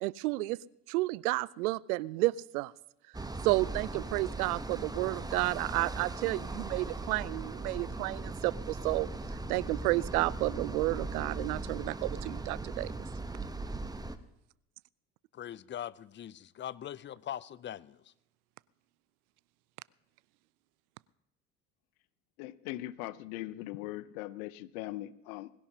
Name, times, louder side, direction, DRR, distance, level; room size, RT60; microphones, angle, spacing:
voice 1, 0.0-0.6 0.9-2.7 3.4-9.1 9.5-12.9, right 20 dB, 75° right, 0.5 m, -31 dB
sound 1, 3.1-14.2, right 2 dB, 10° right, 1.0 m, -39 dB
voice 2, 15.3-18.1, left 10 dB, 25° left, 0.5 m, -42 dB
voice 3, 22.4-25.5, left 16 dB, 70° left, 0.8 m, -40 dB
20.5 x 16.5 x 2.9 m
hypercardioid pair, 65°, 45 cm